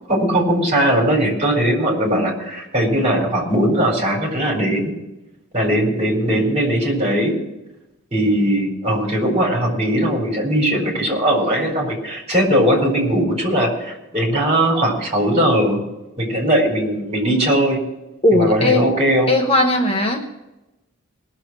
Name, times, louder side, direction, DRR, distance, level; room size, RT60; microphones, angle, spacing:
voice 1, 0.1-4.9 5.5-7.3 8.1-15.8 16.2-17.8 18.3-19.3, right 1 dB, 30° right, 0 dB, 4.3 m, -19 dB
voice 2, 18.2-18.8 19.3-20.2, left 2 dB, 25° left, 3 dB, 1.0 m, -17 dB
20.0 x 7.0 x 6.1 m, 0.99 s
head